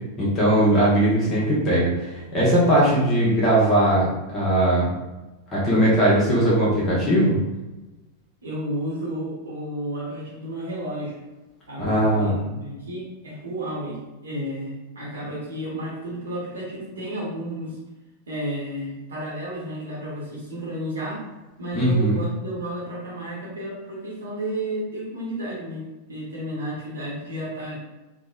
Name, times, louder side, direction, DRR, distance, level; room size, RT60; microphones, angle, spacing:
voice 1, 0.2-4.9 5.5-7.4 11.8-12.4 21.7-22.2, right 1 dB, 25° left, -7 dB, 0.9 m, -19 dB
voice 2, 8.4-11.2 11.7-17.8 18.3-21.2 21.6-27.7, right 1 dB, 70° right, -6 dB, 0.8 m, -32 dB
3.2 x 2.0 x 2.3 m, 1.1 s
figure-of-eight pair, 90°, 0 cm